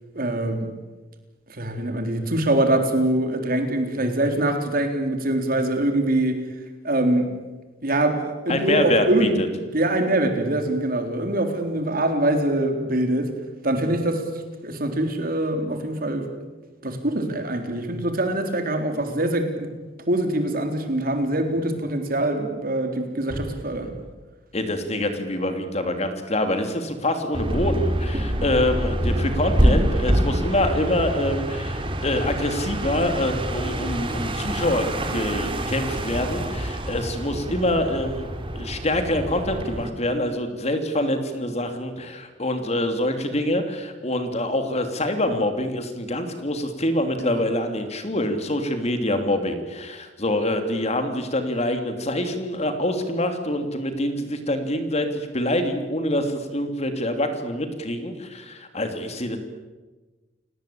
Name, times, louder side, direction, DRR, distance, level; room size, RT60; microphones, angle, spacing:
voice 1, 0.1-0.7 1.5-6.4 6.8-7.3 7.8-9.4 9.7-13.3 13.6-14.2 14.6-16.3 16.8-19.7 20.1-23.9 47.2-47.4, right 1 dB, 55° right, 5 dB, 3.8 m, -23 dB
voice 2, 8.5-9.5 24.5-38.3 38.5-59.4, left 1 dB, 35° left, 7 dB, 3.0 m, -25 dB
sound 1, 23.3-25.8, equal, 75° left, 7.3 m, -41 dB
sound 2, 27.3-39.9, equal, 30° right, 2.8 m, -26 dB
30.0 x 18.5 x 8.7 m, 1.2 s
head